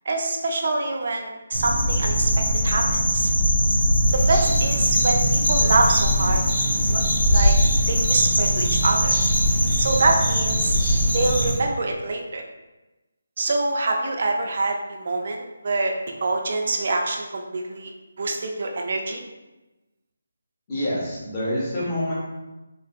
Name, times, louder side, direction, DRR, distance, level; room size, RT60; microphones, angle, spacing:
voice 1, 0.1-2.3 2.6-2.8 3.1-3.3 4.1-6.4 6.9-7.0 7.3-7.5 7.9-9.2 9.8-10.8 11.1-12.4 13.4-15.9 16.2-17.9 18.2-19.2, right 2 dB, 50° right, 2 dB, 0.4 m, -25 dB
sound 1, 1.5-11.5, equal, 85° left, 1.3 m, -21 dB
sound 2, 4.1-11.6, right 1 dB, 10° right, 0.7 m, -31 dB
voice 2, 20.7-22.1, left 1 dB, 25° left, -8 dB, 1.1 m, -26 dB
3.6 x 2.6 x 2.4 m, 1.1 s
figure-of-eight pair, 160°, 0 cm